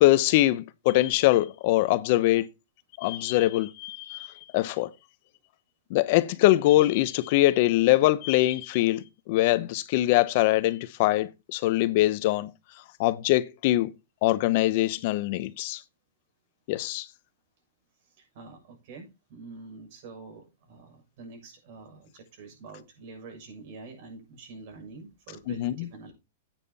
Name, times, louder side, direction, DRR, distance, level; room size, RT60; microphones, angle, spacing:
voice 1, 0.0-2.4 3.0-4.9 5.9-12.5 13.0-13.9 14.2-15.8 16.7-17.1 25.6-25.9, left 16 dB, 55° left, 0.9 m, -23 dB
voice 2, 18.0-26.1, right 3 dB, 55° right, 6.8 m, -46 dB
10.0 x 9.1 x 4.1 m
hypercardioid pair, 125°, 0 cm